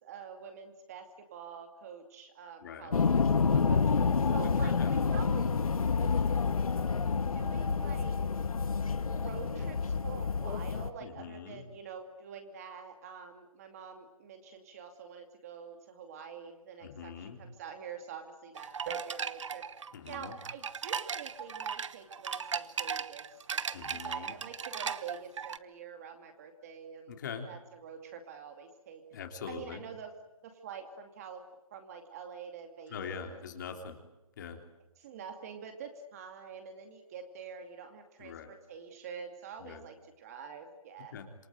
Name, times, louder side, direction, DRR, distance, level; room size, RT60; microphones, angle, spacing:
voice 1, 0.0-5.5 6.0-6.2 7.3-8.2 9.1-19.7 20.1-27.1 27.5-29.0 29.5-30.2 30.4-31.5 31.7-33.4 35.0-41.2, right 6 dB, 25° right, 5 dB, 2.5 m, -46 dB
voice 2, 2.6-3.0 4.4-5.0 11.0-11.6 16.8-17.4 19.9-20.4 23.7-24.3 27.1-27.5 29.1-29.8 32.9-34.0 34.4-34.6 38.2-38.5 39.6-39.9 41.1-41.5, left 7 dB, 30° left, 4 dB, 3.3 m, -43 dB
sound 1, 2.9-10.9, left 5 dB, 75° left, 1.6 m, -28 dB
sound 2, 18.6-25.6, right 6 dB, 55° right, 1.1 m, -37 dB
27.5 x 23.0 x 9.2 m, 0.97 s
hypercardioid pair, 165°, 18 cm